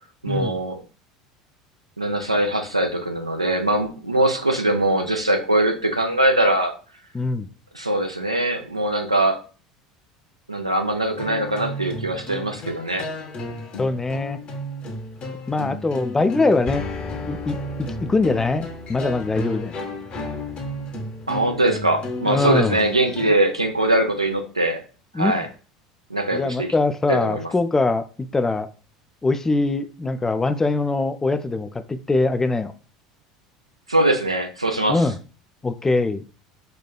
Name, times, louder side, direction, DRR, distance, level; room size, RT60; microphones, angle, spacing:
voice 1, 0.2-0.8 2.0-6.7 7.7-9.4 10.5-13.1 21.3-24.8 25.2-25.5 26.1-26.7 27.1-27.5 33.9-35.1, right 1 dB, 90° right, 4 dB, 0.5 m, -22 dB
voice 2, 7.1-7.5 13.8-14.4 15.5-16.9 17.3-17.6 18.0-19.8 22.3-22.8 25.1-25.4 26.3-28.0 28.3-28.7 29.2-32.7 34.9-35.1 35.6-36.2, left 3 dB, 15° left, 10 dB, 0.3 m, -22 dB
sound 1, 11.1-23.3, left 1 dB, 40° left, 0.8 m, -33 dB
4.3 x 2.2 x 2.3 m, 0.37 s
figure-of-eight pair, 70°, 3 cm